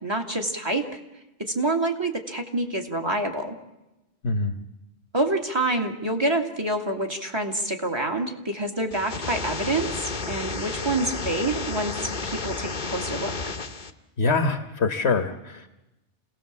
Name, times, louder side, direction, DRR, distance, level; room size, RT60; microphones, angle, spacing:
voice 1, 0.0-0.9 1.4-3.6 5.1-13.3, right 2 dB, 20° right, 3 dB, 2.2 m, -27 dB
voice 2, 4.2-4.5 14.2-15.7, left 4 dB, 70° left, 6 dB, 1.6 m, -24 dB
sound 1, 8.9-13.9, left 3 dB, 45° left, 1.3 m, -32 dB
28.0 x 18.0 x 7.4 m, 1.0 s
omnidirectional pair, 1.2 m